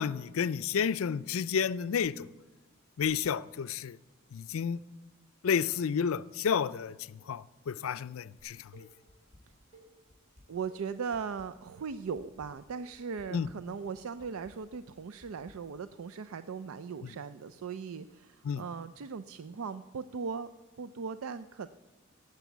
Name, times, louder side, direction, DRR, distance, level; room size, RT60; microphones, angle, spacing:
voice 1, 0.0-2.3 3.0-4.0 4.3-4.8 5.4-8.9 13.3-13.5 18.4-18.6, left 7 dB, 70° left, 0.4 m, -31 dB
Dishes pots and pans, 8.4-9.4 9.7-15.5, right 1 dB, 35° right, 4.5 m, -58 dB
voice 2, 10.5-20.5 20.8-21.7, right 5 dB, 75° right, 0.4 m, -38 dB
17.0 x 6.9 x 8.2 m
head